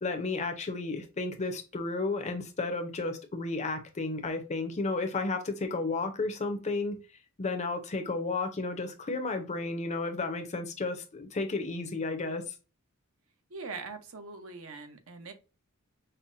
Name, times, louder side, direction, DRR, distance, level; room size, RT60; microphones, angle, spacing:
voice 1, 0.0-7.0 7.4-12.4, left 3 dB, 30° left, 0.6 m, -32 dB
voice 2, 13.5-15.3, right 4 dB, 65° right, 0.7 m, -42 dB
5.4 x 2.1 x 2.5 m
head